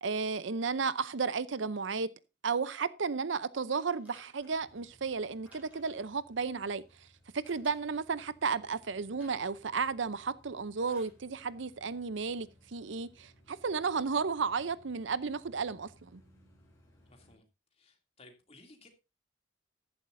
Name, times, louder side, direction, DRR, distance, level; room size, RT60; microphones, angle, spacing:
voice 1, 0.0-2.1 2.4-6.8 7.3-16.2, right 5 dB, 65° right, 0.6 m, -33 dB
sound 1, 3.7-4.7 5.4-6.1 7.4-8.0 9.2-9.6 10.8-11.2 12.2-12.3, equal, 5° right, 7.8 m, -61 dB
sound 2, 4.3-17.4, equal, 10° left, 6.1 m, -63 dB
voice 2, 17.1-17.4 17.7-18.9, left 2 dB, 30° left, 2.8 m, -58 dB
14.0 x 11.5 x 2.7 m
head